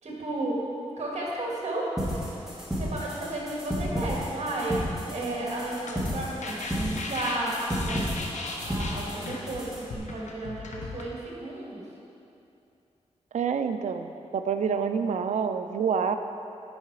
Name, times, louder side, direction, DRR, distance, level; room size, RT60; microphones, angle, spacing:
voice 1, 0.0-0.7 1.0-2.4 2.8-8.0 8.7-11.9, right 2 dB, 70° right, -4 dB, 2.0 m, -33 dB
sound 1, 2.0-10.0, equal, 5° right, 2.1 m, -33 dB
sound 2, 5.6-11.0, left 3 dB, 85° left, 0.9 m, -37 dB
voice 2, 13.3-16.2, right 6 dB, 90° right, 8 dB, 0.4 m, -27 dB
9.5 x 5.7 x 4.8 m, 2.7 s
wide cardioid pair, 105°, 12 cm